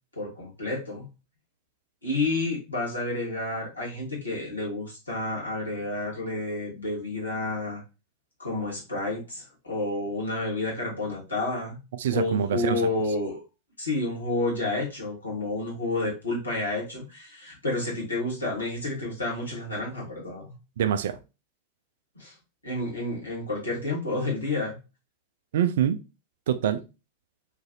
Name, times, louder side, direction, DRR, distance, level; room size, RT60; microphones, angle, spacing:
voice 1, 0.1-1.1 2.0-7.8 8.4-11.8 12.1-13.4 13.8-20.5 22.1-22.3 22.6-24.8, left 2 dB, 80° left, 1.4 m, -30 dB
voice 2, 12.0-12.8 20.8-21.2 25.5-26.0 26.5-26.8, right 9 dB, 60° right, 0.3 m, -25 dB
3.0 x 2.5 x 2.7 m
figure-of-eight pair, 90°, 0 cm